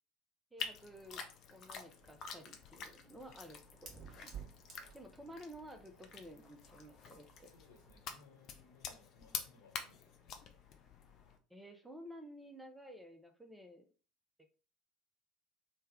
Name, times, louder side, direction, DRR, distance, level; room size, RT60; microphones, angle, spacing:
voice 1, 0.5-1.2 1.5-3.6 4.0-4.4 4.9-7.5 11.5-13.9, equal, 5° right, 6 dB, 0.6 m, -53 dB
sound 1, 0.6-11.4, left 6 dB, 45° left, 0.5 m, -48 dB
Fire, 2.0-8.1, right 7 dB, 40° right, 1.0 m, -56 dB
voice 2, 7.5-10.4, left 4 dB, 75° left, 0 dB, 1.0 m, -64 dB
3.3 x 2.2 x 3.5 m, 0.37 s
figure-of-eight pair, 65°, 0 cm